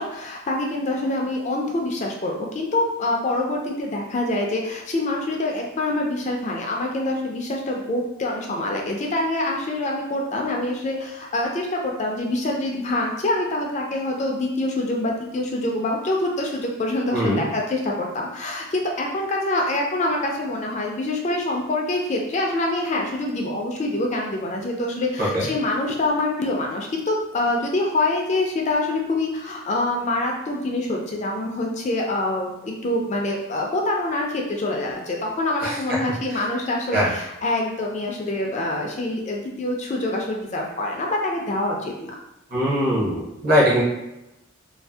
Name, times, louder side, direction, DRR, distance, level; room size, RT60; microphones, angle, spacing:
voice 1, 0.0-42.1, left 2 dB, 30° left, -1 dB, 0.3 m, -25 dB
voice 2, 17.1-17.4 25.2-25.5 35.6-36.0 36.3-36.4 36.9-37.2 42.5-43.8, equal, 40° right, -6 dB, 0.7 m, -21 dB
2.6 x 2.0 x 3.3 m, 0.91 s
head